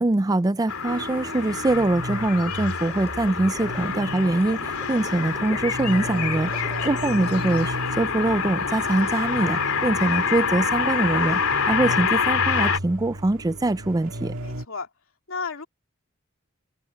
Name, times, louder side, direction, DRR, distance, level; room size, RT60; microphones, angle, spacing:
voice 1, 0.0-14.3, right 2 dB, 15° right, 0.4 m, -23 dB
sound 1, 0.7-12.8, left 6 dB, 85° left, 3.3 m, -26 dB
sound 2, 0.9-14.6, right 1 dB, 70° right, 2.1 m, -35 dB
sound 3, 2.9-7.6, left 1 dB, 10° left, 7.8 m, -44 dB
voice 2, 6.5-6.8 14.4-14.9 15.3-15.7, left 5 dB, 65° left, 3.0 m, -33 dB
head